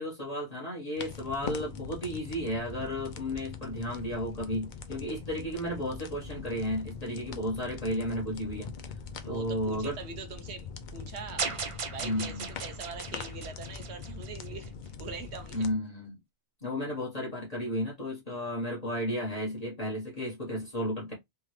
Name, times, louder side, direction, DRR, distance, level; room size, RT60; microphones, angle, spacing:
voice 1, 0.0-8.7 9.2-10.0 12.0-12.5 15.5-16.2 16.6-21.1, equal, 35° left, 1.2 m, -33 dB
sound 1, 1.0-15.7, left 5 dB, 55° left, 0.6 m, -42 dB
voice 2, 9.2-11.5 11.9-14.7 15.0-15.7, right 5 dB, 80° right, 1.1 m, -43 dB
sound 2, 11.4-14.7, right 5 dB, 50° right, 0.4 m, -37 dB
3.5 x 2.2 x 3.1 m
omnidirectional pair, 1.1 m